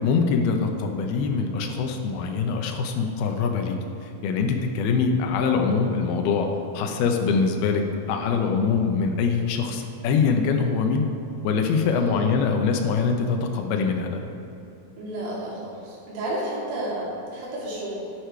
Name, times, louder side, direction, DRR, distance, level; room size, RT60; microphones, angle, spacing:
voice 1, 0.0-3.8 4.0-6.5 6.7-11.1 11.4-14.2, left 5 dB, 80° left, 4 dB, 2.3 m, -23 dB
voice 2, 11.9-12.2 15.0-18.1, right 1 dB, 75° right, -6 dB, 5.0 m, -31 dB
11.5 x 8.6 x 4.5 m, 2.9 s
omnidirectional pair, 5.4 m